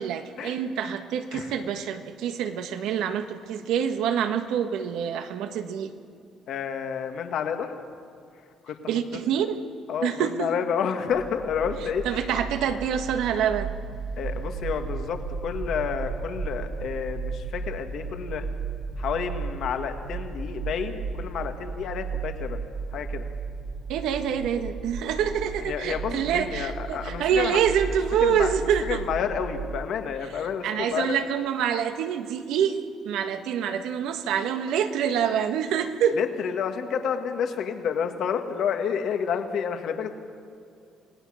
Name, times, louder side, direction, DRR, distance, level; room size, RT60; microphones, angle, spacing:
voice 1, 0.0-5.9 8.9-9.6 10.0-10.5 12.0-13.8 23.9-29.0 30.6-32.8 33.0-36.2, right 8 dB, 80° right, 7 dB, 1.5 m, -26 dB
voice 2, 6.5-7.7 8.7-8.8 9.9-12.2 14.2-18.5 19.0-22.6 22.9-23.3 25.6-27.6 28.2-28.5 28.9-31.2 36.1-40.1, left 7 dB, 60° left, 6 dB, 1.8 m, -30 dB
sound 1, 11.1-29.8, right 5 dB, 50° right, 2.0 m, -35 dB
27.0 x 18.5 x 6.5 m, 2.4 s
cardioid pair, 150°, 0 cm